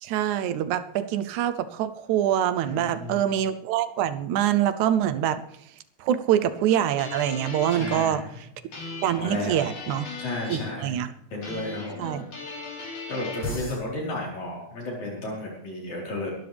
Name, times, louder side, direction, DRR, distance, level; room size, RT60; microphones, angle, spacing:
voice 1, 0.0-5.4 6.0-8.5 9.0-10.1 10.5-11.1 12.0-12.3, right 10 dB, 80° right, 12 dB, 2.1 m, -25 dB
voice 2, 2.7-3.2 7.7-8.2 9.2-9.7 10.2-11.0 11.3-12.2 13.1-16.3, left 2 dB, 70° left, -3 dB, 5.8 m, -33 dB
sound 1, 6.7-8.2 8.7-10.8 11.4-13.8, left 3 dB, 90° left, 5.7 m, -37 dB
22.0 x 12.0 x 3.5 m, 0.76 s
omnidirectional pair, 3.4 m